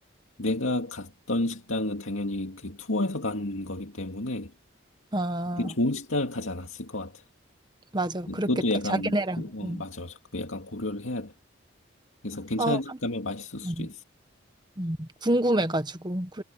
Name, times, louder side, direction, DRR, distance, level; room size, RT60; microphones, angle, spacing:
voice 1, 0.4-4.5 5.6-7.2 8.3-11.3 12.2-14.0, left 2 dB, 85° left, 2.2 m, -31 dB
voice 2, 5.1-5.7 7.9-8.5 8.9-9.8 12.6-12.8 13.6-13.9 14.8-16.4, right 1 dB, 20° right, 1.3 m, -28 dB
head